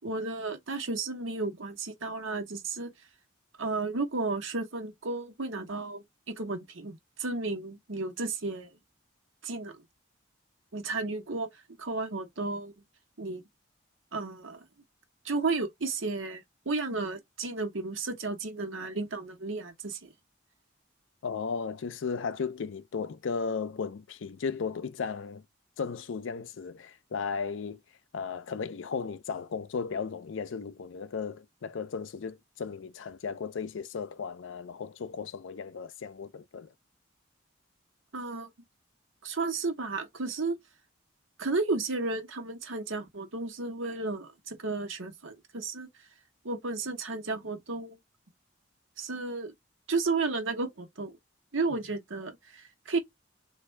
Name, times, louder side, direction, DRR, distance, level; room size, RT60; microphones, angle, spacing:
voice 1, 0.0-2.9 3.6-8.7 9.4-9.8 10.7-11.5 11.8-12.7 13.2-13.4 14.1-14.6 15.2-20.1 38.1-38.5 39.2-40.6 41.4-45.9 46.4-48.0 49.0-49.5 49.9-51.2 51.5-53.0, right 3 dB, 80° right, 1.1 m, -33 dB
voice 2, 21.2-25.4 25.8-27.8 28.1-36.7 51.7-51.8, left 5 dB, 75° left, 0.5 m, -35 dB
3.5 x 2.6 x 3.2 m
head